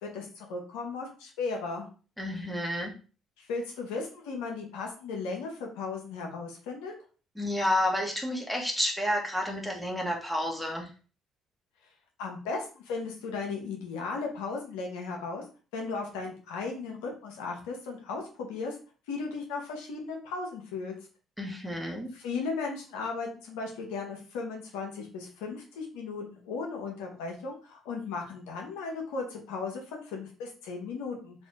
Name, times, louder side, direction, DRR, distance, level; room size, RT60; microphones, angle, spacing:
voice 1, 0.0-1.9 3.4-6.9 12.2-15.4 15.7-18.8 19.1-20.9 22.1-31.5, left 4 dB, 85° left, 0 dB, 0.8 m, -36 dB
voice 2, 2.2-2.9 7.3-10.9 21.4-22.1, left 1 dB, ahead, 0 dB, 1.2 m, -30 dB
2.7 x 2.6 x 3.4 m, 0.37 s
hypercardioid pair, 55°, 0 cm